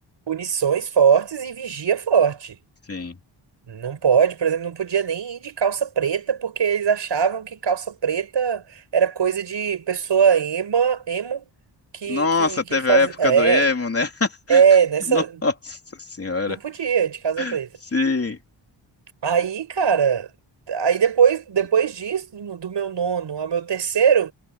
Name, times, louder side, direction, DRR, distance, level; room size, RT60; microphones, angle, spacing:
voice 1, 0.3-2.6 3.7-11.5 11.9-13.7 14.5-15.4 16.5-17.7 19.2-20.3 20.7-24.3, right 7 dB, 65° right, 5.5 m, -21 dB
voice 2, 12.1-14.6 15.1-15.8 16.2-16.6 17.4-17.6 17.9-18.4, left 3 dB, 30° left, 3.4 m, -23 dB
wide cardioid pair, 165°, 46 cm